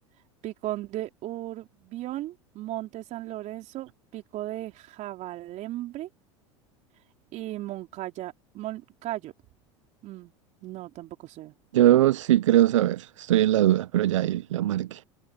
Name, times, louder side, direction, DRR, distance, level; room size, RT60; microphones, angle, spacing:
voice 1, 0.4-6.1 7.3-9.3 10.0-10.3 10.6-11.5, right 15 dB, 50° right, 3.7 m, -36 dB
voice 2, 11.7-15.0, right 13 dB, 80° right, 0.7 m, -21 dB
hypercardioid pair, 85°, 16 cm